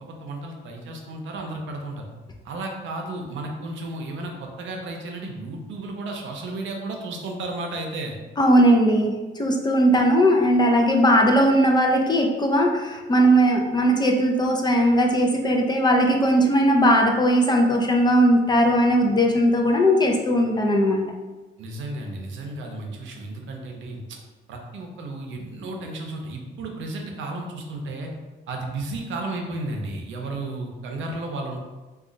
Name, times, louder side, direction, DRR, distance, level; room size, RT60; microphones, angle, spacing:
voice 1, 0.0-2.1 2.4-8.2 21.6-24.2 24.5-28.1 28.5-31.6, right 2 dB, 75° right, 2 dB, 0.6 m, -33 dB
voice 2, 8.4-21.0, equal, 20° left, 1 dB, 0.4 m, -19 dB
2.3 x 2.3 x 3.8 m, 1.2 s
cardioid pair, 90°, 20 cm